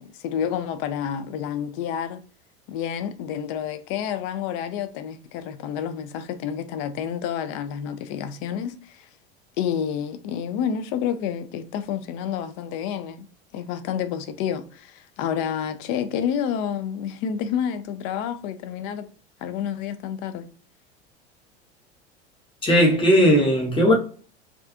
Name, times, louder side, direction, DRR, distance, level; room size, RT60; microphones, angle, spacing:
voice 1, 0.0-2.2 2.7-9.1 9.6-13.3 13.5-19.0 19.4-20.5, left 8 dB, 40° left, 0.4 m, -29 dB
voice 2, 22.6-23.9, equal, 15° left, 0.8 m, -17 dB
2.3 x 2.3 x 2.5 m
figure-of-eight pair, 75°, 33 cm